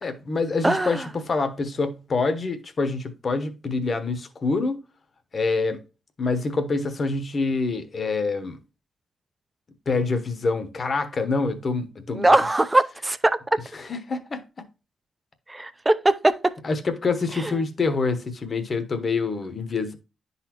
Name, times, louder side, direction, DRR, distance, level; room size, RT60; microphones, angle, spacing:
voice 1, 0.0-4.8 5.3-5.8 6.2-8.6 9.9-12.3 13.7-14.4 16.6-20.0, left 3 dB, 40° left, 1.0 m, -26 dB
voice 2, 0.6-1.1 12.1-13.6 15.5-16.5 17.3-17.5, right 2 dB, 15° right, 0.5 m, -21 dB
11.0 x 4.1 x 2.9 m
wide cardioid pair, 135°, 0 cm